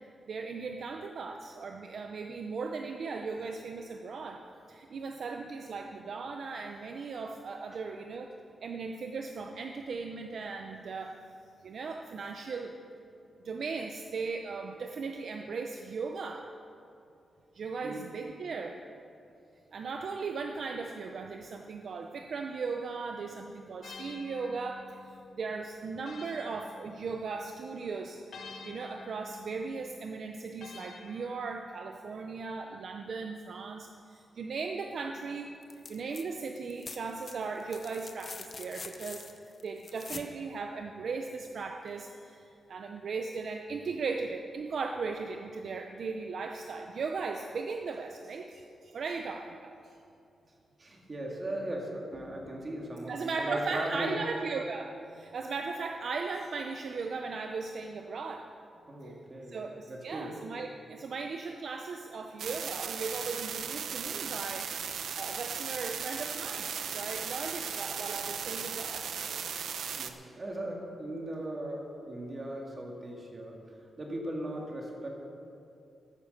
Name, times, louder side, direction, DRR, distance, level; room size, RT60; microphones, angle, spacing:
voice 1, 0.3-4.4 4.7-8.3 8.6-11.2 11.6-12.7 13.4-16.5 17.5-18.8 19.7-28.2 28.6-35.5 35.9-50.0 53.1-58.5 59.0-59.1 59.5-64.7 65.2-69.1, right 4 dB, 50° right, 4 dB, 0.6 m, -37 dB
sound 1, 23.8-27.5 28.3-32.0, left 4 dB, 55° left, 1.3 m, -50 dB
sound 2, 35.6-36.2 36.5-40.3 42.0-42.1, left 4 dB, 35° left, 0.7 m, -45 dB
voice 2, 50.8-54.1 58.9-59.6 59.9-60.3 69.9-73.6 74.0-75.1, right 1 dB, 25° right, 0 dB, 2.0 m, -38 dB
sound 3, 62.4-70.1, right 7 dB, 85° right, 0.8 m, -37 dB
13.5 x 10.0 x 6.6 m, 2.6 s
wide cardioid pair, 180°, 0 cm